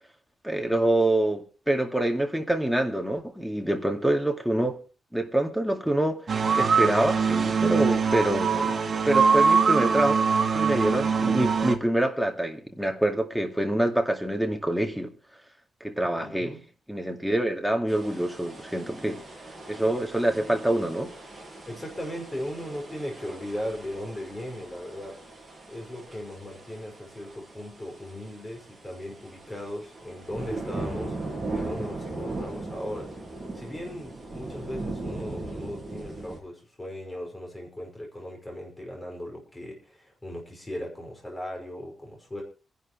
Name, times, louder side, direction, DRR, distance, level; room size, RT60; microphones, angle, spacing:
voice 1, 0.4-4.8 5.1-6.2 6.6-8.8 9.1-10.2 10.5-15.1 15.8-16.5 16.9-19.2 19.7-21.1, right 1 dB, ahead, 2.1 m, -26 dB
sound 1, 6.3-11.8, right 5 dB, 45° right, 1.9 m, -23 dB
voice 2, 16.2-16.7 21.7-25.2 25.7-31.1 31.5-33.1 33.6-42.4, left 1 dB, 15° left, 5.5 m, -37 dB
sound 2, 17.9-36.4, right 2 dB, 20° right, 6.3 m, -39 dB
26.0 x 11.5 x 3.2 m
wide cardioid pair, 165°, 0 cm